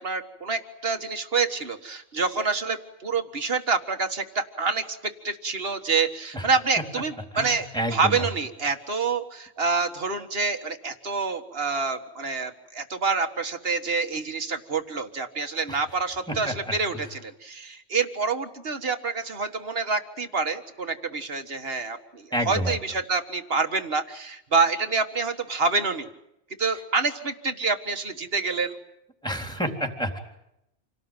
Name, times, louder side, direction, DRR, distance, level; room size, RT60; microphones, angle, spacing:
voice 1, 0.0-5.0 5.2-26.1 26.6-28.8, right 4 dB, 55° right, 7 dB, 1.9 m, -27 dB
voice 2, 7.3-8.3 15.7-15.8 16.3-16.5 22.3-22.8 29.2-30.2, equal, 5° left, 2 dB, 3.7 m, -29 dB
28.0 x 18.5 x 9.0 m, 0.83 s
omnidirectional pair, 1.2 m